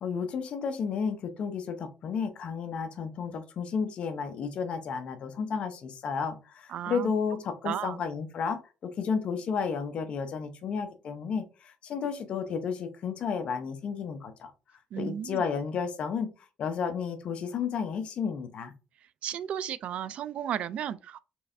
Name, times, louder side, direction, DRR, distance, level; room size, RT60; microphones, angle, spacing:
voice 1, 0.0-14.5 15.0-16.3 16.6-18.7, left 6 dB, 55° left, 0.8 m, -32 dB
voice 2, 6.7-7.1 7.6-8.0 14.9-15.4 19.2-21.2, right 9 dB, 60° right, 0.3 m, -34 dB
4.6 x 3.2 x 2.6 m
cardioid pair, 120°, 2 cm